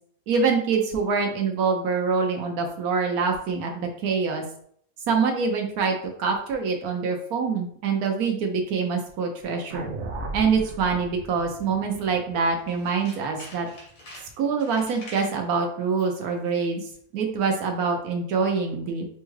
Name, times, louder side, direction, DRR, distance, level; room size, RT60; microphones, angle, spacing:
voice 1, 0.3-4.4 5.1-9.9 10.3-13.7 14.4-16.8 17.1-19.0, right 5 dB, 80° right, 3 dB, 1.1 m, -25 dB
sound 1, 9.7-14.0, right 2 dB, 60° right, 0.8 m, -37 dB
Tools, 12.6-15.4 15.9-16.2 16.5-16.6, left 1 dB, 85° left, 1.8 m, -46 dB
5.2 x 2.3 x 3.1 m, 0.63 s
omnidirectional pair, 1.5 m